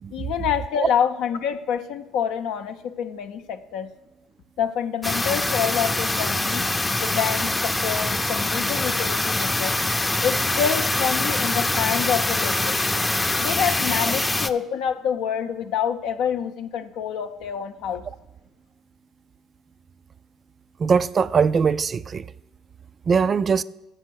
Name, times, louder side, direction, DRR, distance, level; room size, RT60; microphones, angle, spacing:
voice 1, 0.1-3.9 4.6-6.6 7.0-9.8 10.2-12.8 13.4-18.0, left 8 dB, 75° left, 0.5 m, -27 dB
sound 1, 5.0-14.5, left 2 dB, 15° left, 0.5 m, -24 dB
voice 2, 20.8-22.3 23.1-23.6, right 6 dB, 40° right, 0.3 m, -21 dB
7.5 x 6.1 x 6.3 m
supercardioid pair, 70°, 0 cm